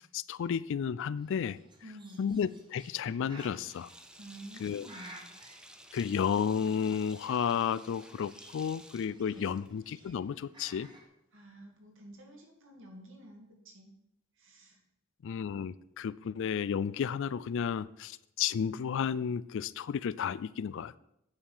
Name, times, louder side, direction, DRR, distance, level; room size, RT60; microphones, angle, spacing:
voice 1, 0.1-1.6 2.2-3.9 4.6-4.9 5.9-10.9 15.2-21.0, left 7 dB, 60° left, 18 dB, 0.3 m, -32 dB
Bird, 1.2-11.1, right 1 dB, 20° right, 1.5 m, -56 dB
voice 2, 1.8-2.4 4.2-5.3 9.3-9.6 11.3-13.9 14.3-14.8, right 1 dB, 60° right, 2 dB, 2.3 m, -51 dB
Sink (filling or washing), 3.5-9.9, right 1 dB, 5° right, 0.6 m, -54 dB
8.9 x 6.5 x 5.5 m, 0.80 s
head